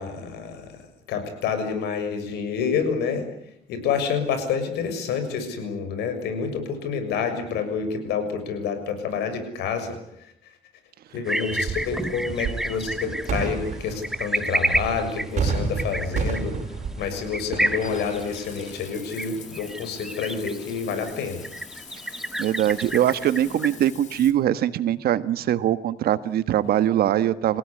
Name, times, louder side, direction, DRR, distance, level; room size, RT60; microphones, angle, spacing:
voice 1, 0.0-3.3 3.7-10.3 11.1-16.6 17.0-21.4, left 6 dB, 80° left, 8 dB, 6.7 m, -28 dB
sound 1, 11.2-23.9, right 1 dB, 5° right, 1.6 m, -31 dB
sound 2, 11.5-18.9, right 5 dB, 45° right, 6.2 m, -31 dB
Water / Bathtub (filling or washing), 17.7-24.3, left 7 dB, 45° left, 3.2 m, -45 dB
voice 2, 22.4-27.6, right 11 dB, 65° right, 13 dB, 1.5 m, -22 dB
29.5 x 17.0 x 10.0 m, 0.75 s
cardioid pair, 110°, 17 cm